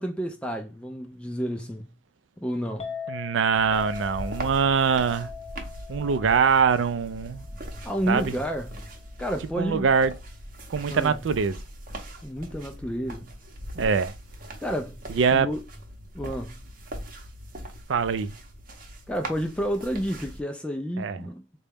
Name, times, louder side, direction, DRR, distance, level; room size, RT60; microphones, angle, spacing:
voice 1, 0.0-1.9 2.4-2.9 7.8-8.8 9.2-9.9 10.9-11.2 12.2-13.3 14.6-15.0 15.3-15.6 16.1-16.6 19.1-21.4, equal, 5° left, 0.3 m, -30 dB
Chink clink, 2.8-9.1, left 7 dB, 35° left, 0.8 m, -42 dB
voice 2, 3.1-5.3 5.9-7.5 8.1-8.4 9.6-10.1 10.7-11.6 13.8-14.1 15.1-15.5 17.9-18.3 21.0-21.2, right 6 dB, 70° right, 0.4 m, -23 dB
sound 1, 3.5-20.4, right 1 dB, 45° right, 0.8 m, -40 dB
3.9 x 2.2 x 3.3 m
head